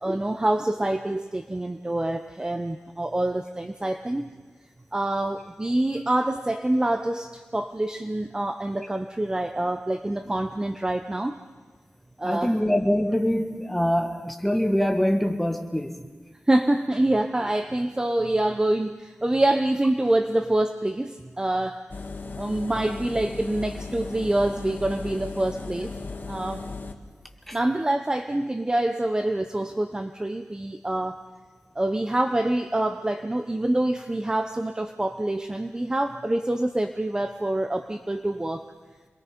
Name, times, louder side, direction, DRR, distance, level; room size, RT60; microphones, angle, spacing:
voice 1, 0.0-4.3 4.9-11.4 12.2-12.6 16.5-21.8 22.4-25.9 26.3-26.6 27.5-31.2 31.8-38.6, right 1 dB, 20° right, 7 dB, 0.8 m, -26 dB
voice 2, 12.2-16.0 27.5-27.6, equal, 5° left, 4 dB, 1.9 m, -24 dB
Engine, 21.9-26.9, left 3 dB, 50° left, 1.6 m, -36 dB
27.5 x 21.5 x 5.2 m, 1.4 s
wide cardioid pair, 115°, 4 cm